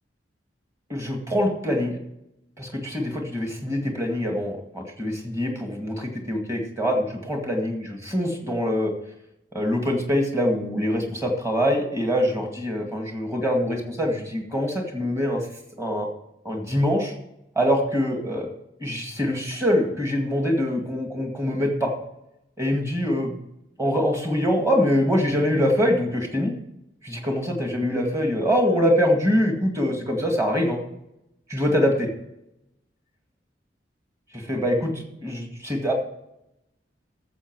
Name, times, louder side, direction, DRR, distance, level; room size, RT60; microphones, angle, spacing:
voice 1, 0.9-2.0 2.6-8.9 9.5-15.5 15.8-16.1 16.4-17.1 17.6-18.5 18.8-21.9 22.6-23.3 23.8-26.5 27.0-30.8 31.5-32.1 34.3-35.9, equal, 15° right, 2 dB, 2.0 m, -24 dB
13.5 x 7.3 x 4.7 m, 0.84 s
head